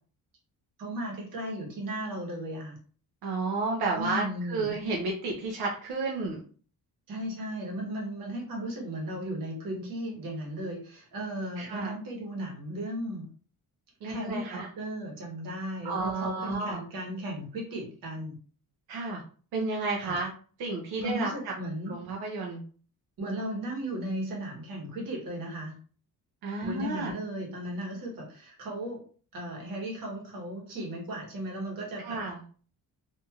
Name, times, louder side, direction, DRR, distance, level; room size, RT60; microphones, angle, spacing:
voice 1, 0.8-2.8 3.9-4.7 7.1-13.3 14.0-18.4 20.0-20.2 21.0-21.9 23.2-25.8 26.6-29.0 29.3-32.2, right 1 dB, 60° right, 0 dB, 1.2 m, -35 dB
voice 2, 3.2-6.4 11.6-11.9 14.0-14.7 15.8-16.8 18.9-19.2 19.5-20.3 20.6-21.3 21.9-22.6 26.4-27.1 32.0-32.4, right 3 dB, 90° right, -1 dB, 0.7 m, -31 dB
2.9 x 2.6 x 2.3 m, 0.41 s
cardioid pair, 170°, 37 cm